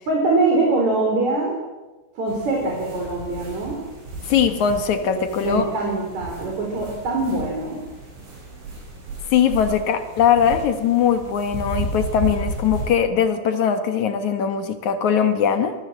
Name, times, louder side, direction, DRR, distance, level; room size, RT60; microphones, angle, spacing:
voice 1, 0.1-1.5 2.1-3.8 5.4-7.8, right 2 dB, 35° right, -1 dB, 5.1 m, -23 dB
sound 1, 2.3-12.9, right 2 dB, 85° right, 10.5 m, -34 dB
voice 2, 4.3-5.6 9.3-15.7, left 8 dB, 75° left, 7 dB, 1.7 m, -20 dB
27.0 x 22.0 x 7.5 m, 1.2 s
omnidirectional pair, 5.7 m